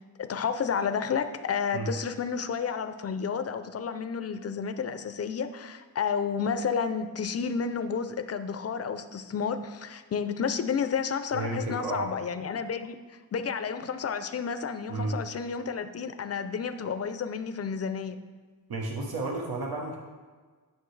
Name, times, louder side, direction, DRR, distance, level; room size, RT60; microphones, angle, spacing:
voice 1, 0.2-18.2, left 6 dB, 45° left, 10 dB, 0.5 m, -31 dB
voice 2, 11.3-12.1 14.9-15.2 18.7-20.0, right 2 dB, 80° right, -1 dB, 1.0 m, -32 dB
9.2 x 6.6 x 3.2 m, 1.5 s
wide cardioid pair, 130°, 36 cm